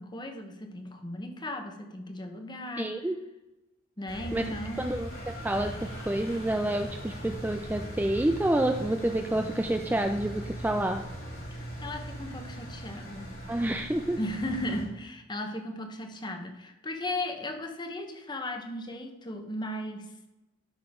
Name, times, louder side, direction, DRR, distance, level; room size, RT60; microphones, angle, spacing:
voice 1, 0.0-2.9 4.0-5.0 11.8-13.3 14.2-20.1, left 1 dB, 20° left, 5 dB, 1.0 m, -36 dB
voice 2, 2.8-3.2 4.3-4.4 4.8-5.1 5.4-11.1 13.5-14.2, right 1 dB, 10° right, 5 dB, 0.3 m, -28 dB
Engine, 4.1-14.8, equal, 85° left, 3.5 m, -40 dB
12.5 x 5.9 x 3.7 m, 1.0 s
head